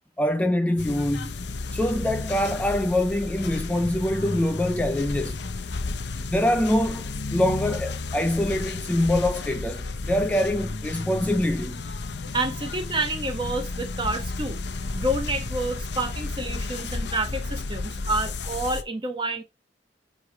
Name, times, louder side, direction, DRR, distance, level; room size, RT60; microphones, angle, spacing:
voice 1, 0.2-1.4 1.7-5.4 6.3-11.8, left 1 dB, 10° left, 0.3 m, -24 dB
sound 1, 0.8-18.8, left 3 dB, 65° left, 0.7 m, -32 dB
voice 2, 12.3-19.4, right 2 dB, 25° right, 1.1 m, -29 dB
7.8 x 3.3 x 4.9 m
head